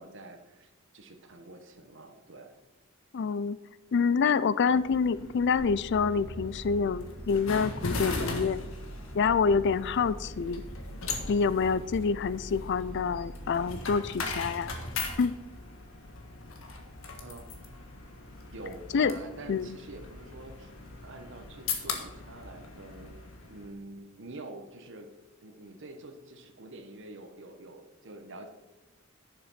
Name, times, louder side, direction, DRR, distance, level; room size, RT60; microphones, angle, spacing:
voice 1, 0.0-2.5 17.2-17.6 18.5-20.7 21.0-23.2 23.5-25.1 25.4-28.5, right 2 dB, 65° right, 6 dB, 1.3 m, -46 dB
voice 2, 3.1-3.6 3.9-8.6 9.1-10.6 11.3-14.7 15.2-15.3 18.9-19.1 19.5-19.7, left 5 dB, 60° left, 17 dB, 0.4 m, -27 dB
sound 1, 4.7-23.7, left 4 dB, 85° left, 1.6 m, -40 dB
sound 2, 5.6-15.1, right 1 dB, 35° right, 2.4 m, -43 dB
11.0 x 6.9 x 5.7 m, 1.1 s
head